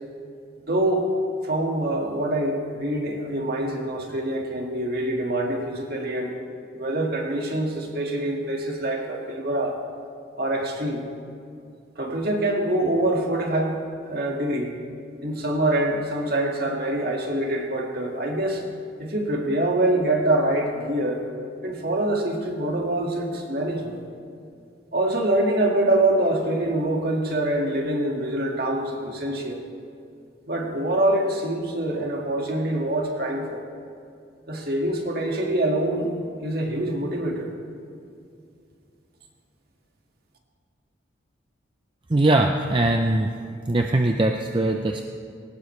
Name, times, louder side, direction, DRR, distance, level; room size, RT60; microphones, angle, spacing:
voice 1, 0.7-1.1 1.4-6.3 6.7-9.8 10.4-11.0 12.0-14.7 15.2-18.6 19.0-21.2 21.6-24.0 24.9-29.6 30.5-33.6 34.5-36.1 36.4-37.5, right 1 dB, 50° right, 0 dB, 2.0 m, -25 dB
voice 2, 42.1-43.3 43.7-45.0, right 2 dB, 25° right, 3 dB, 0.5 m, -21 dB
21.0 x 18.0 x 3.3 m, 2.4 s
head